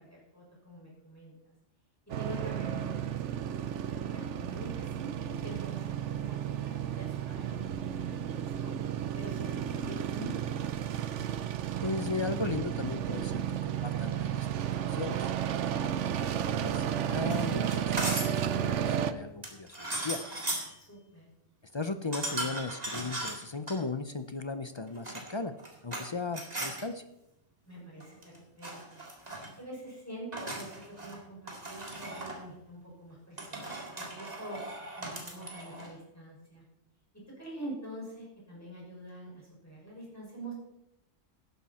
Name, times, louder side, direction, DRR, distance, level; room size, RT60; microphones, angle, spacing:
voice 1, 0.0-1.3 2.2-3.1 3.7-8.8 9.1-10.7 20.8-21.3 27.7-29.0 29.6-33.7 34.0-34.6 35.0-36.6 37.4-40.5, right 1 dB, 10° left, -4 dB, 5.8 m, -45 dB
sound 1, 2.1-19.1, right 9 dB, 75° right, 1.0 m, -33 dB
voice 2, 11.8-15.3 15.9-20.2 21.6-25.5 25.8-27.0, left 3 dB, 40° left, 11 dB, 0.4 m, -37 dB
sound 2, 17.2-18.4 19.4-20.7 22.1-23.8 24.9-26.1 26.3-26.8 28.0-28.4 28.6-29.5 30.3-31.2 31.5-32.4 33.4-35.9, right 1 dB, 35° right, 2.4 m, -38 dB
13.5 x 11.0 x 4.2 m, 0.86 s
omnidirectional pair, 1.3 m